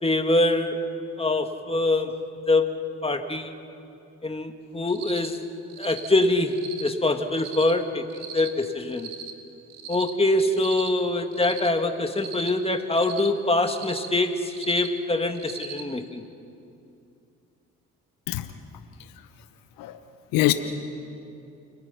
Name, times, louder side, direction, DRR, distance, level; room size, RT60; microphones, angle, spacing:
voice 1, 0.0-0.8 1.2-2.2 2.5-3.6 4.2-5.4 5.8-9.1 9.9-16.2, left 2 dB, 15° left, 5 dB, 2.3 m, -24 dB
Cricket, 4.9-5.3 5.7-6.1 6.5-6.9 7.3-7.7 8.1-8.5 8.9-9.3 9.7-10.1 10.5-10.9 11.3-11.7 12.1-12.5 12.9-13.3 13.7-14.1 14.5-14.9 15.3-15.8, right 9 dB, 75° right, 2.0 m, -39 dB
voice 2, 18.3-18.5 19.8-20.0 20.3-20.5, left 17 dB, 85° left, 9 dB, 0.9 m, -22 dB
29.5 x 23.5 x 5.8 m, 2.7 s
supercardioid pair, 55°, 33 cm